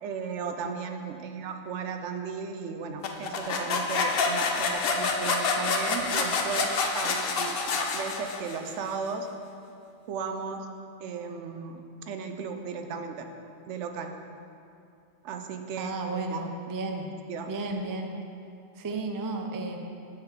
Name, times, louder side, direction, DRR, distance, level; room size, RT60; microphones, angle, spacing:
voice 1, 0.0-7.6 7.9-9.3 10.1-10.7 11.0-13.3 13.7-14.2 15.2-16.4 17.3-17.5, right 5 dB, 85° right, 6 dB, 0.9 m, -35 dB
sound 1, 3.0-8.7, left 4 dB, 60° left, 0.8 m, -28 dB
voice 2, 15.8-17.1 17.5-18.1 18.7-19.8, right 2 dB, 30° right, 3 dB, 0.3 m, -33 dB
6.6 x 4.7 x 6.7 m, 2.5 s
omnidirectional pair, 1.2 m